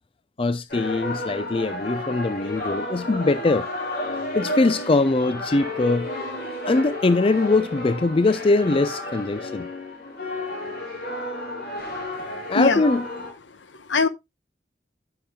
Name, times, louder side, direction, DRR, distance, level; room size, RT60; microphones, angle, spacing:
voice 1, 0.4-3.7 4.3-6.1 6.7-9.7 12.5-13.0, left 3 dB, 30° left, 0.4 m, -22 dB
sound 1, 0.7-13.3, left 1 dB, 50° left, 3.4 m, -32 dB
voice 2, 12.1-12.8 13.5-14.1, left 3 dB, 75° left, 0.9 m, -24 dB
15.5 x 5.9 x 2.2 m
head